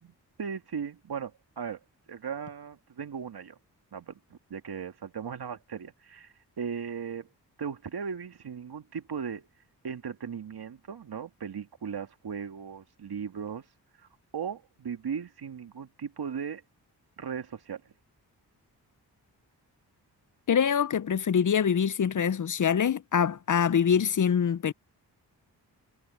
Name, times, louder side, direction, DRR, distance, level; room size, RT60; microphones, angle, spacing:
voice 1, 0.0-1.8 2.1-3.6 3.9-7.3 7.6-9.5 9.8-13.6 14.3-16.6 17.2-17.8, right 7 dB, 65° right, 2.2 m, -37 dB
voice 2, 20.5-24.7, left 7 dB, 50° left, 0.7 m, -24 dB
cardioid pair, 50°, 41 cm